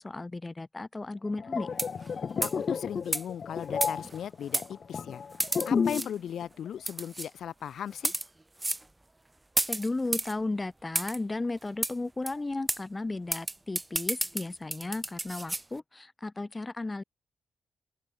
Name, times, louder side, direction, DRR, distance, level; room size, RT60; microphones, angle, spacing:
voice 1, 0.0-1.7 9.7-17.0, left 2 dB, 15° left, 2.0 m, -34 dB
sound 1, 1.3-6.2 6.4-6.7, left 6 dB, 35° left, 0.6 m, -32 dB
sound 2, 1.7-2.1 2.4-2.6 3.1-3.2 3.8-4.2 4.5-4.7 5.4-6.1 6.9-7.3 7.9-8.3 8.6-8.8 9.6-10.3 10.9-11.2 11.8-11.9 12.3-12.4 12.7-12.8 13.3-15.6, right 2 dB, 10° right, 0.7 m, -31 dB
voice 2, 2.4-5.2 5.6-8.1, left 9 dB, 65° left, 1.1 m, -37 dB
open air
wide cardioid pair, 180°, 0 cm